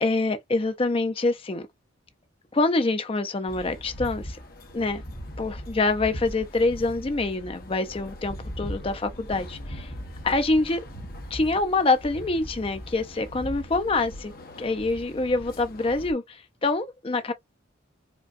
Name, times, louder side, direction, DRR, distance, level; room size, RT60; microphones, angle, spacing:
voice 1, 0.0-1.7 2.5-4.4 4.7-5.0 5.4-9.9 10.2-10.8 11.3-14.3 14.6-17.3, left 3 dB, 30° left, 0.5 m, -25 dB
sound 1, 3.5-16.1, equal, 45° left, 0.9 m, -39 dB
5.1 x 2.2 x 2.4 m
head